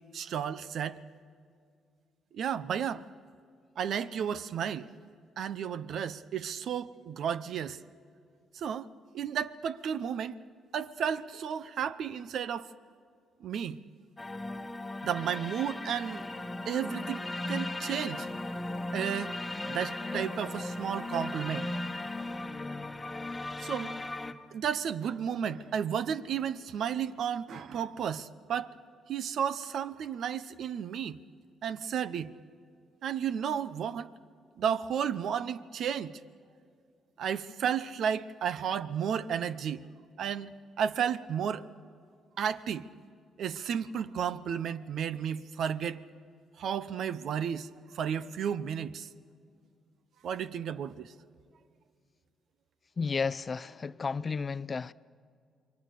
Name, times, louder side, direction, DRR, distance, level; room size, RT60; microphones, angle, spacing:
voice 1, 0.1-1.0 2.3-3.0 3.8-4.9 5.4-7.8 8.5-10.4 10.7-12.7 13.4-13.8 15.0-16.2 16.6-17.2 17.5-18.3 18.9-19.3 19.7-21.7 23.6-23.9 24.5-28.7 29.1-31.2 31.6-32.3 33.0-34.1 34.6-36.1 37.2-39.8 40.2-41.7 42.4-42.8 43.4-46.0 46.6-47.7 47.9-49.1 50.2-51.1, right 8 dB, 70° right, 0.8 m, -33 dB
sound 1, 14.2-24.3, left 2 dB, 15° left, 1.3 m, -37 dB
voice 2, 53.0-54.9, left 5 dB, 35° left, 0.5 m, -32 dB
28.0 x 22.5 x 6.8 m
cardioid pair, 90°, 0 cm